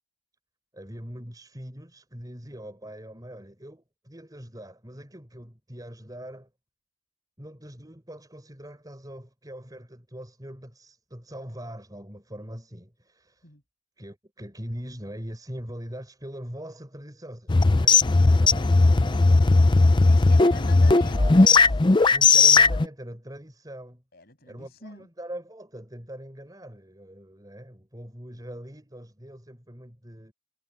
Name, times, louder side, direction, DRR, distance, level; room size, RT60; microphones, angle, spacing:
voice 1, 0.7-6.5 7.4-13.5 14.0-19.4 20.8-21.8 22.1-24.0 24.4-30.3, equal, 20° right, 4.9 m, -42 dB
sound 1, 17.5-22.9, left 3 dB, 25° left, 0.5 m, -17 dB
voice 2, 20.0-21.8 24.1-25.1, left 2 dB, 50° left, 7.9 m, -44 dB
head